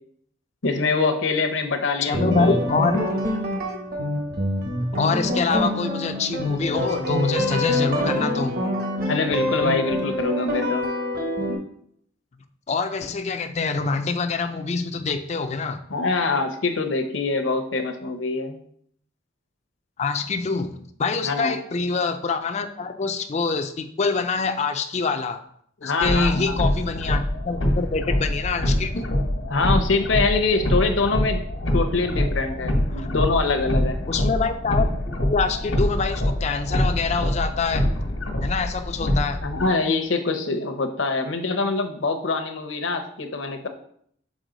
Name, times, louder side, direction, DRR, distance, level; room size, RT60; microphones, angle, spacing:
voice 1, 0.6-2.6 2.9-3.0 9.0-10.9 15.9-18.6 21.2-21.6 25.8-26.6 28.9-29.0 29.5-31.4 31.7-34.0 39.4-43.7, left 3 dB, 70° left, 6 dB, 0.8 m, -24 dB
voice 2, 2.1-3.0 5.0-8.6 12.7-15.8 20.0-25.4 25.8-29.1 32.9-33.1 34.1-37.9 38.4-39.4, left 4 dB, 35° left, 7 dB, 0.4 m, -25 dB
sound 1, 2.1-11.5, left 1 dB, 50° right, 1.0 m, -25 dB
sound 2, 26.0-39.7, left 1 dB, 85° left, 1.3 m, -25 dB
6.2 x 4.4 x 3.9 m, 0.66 s
head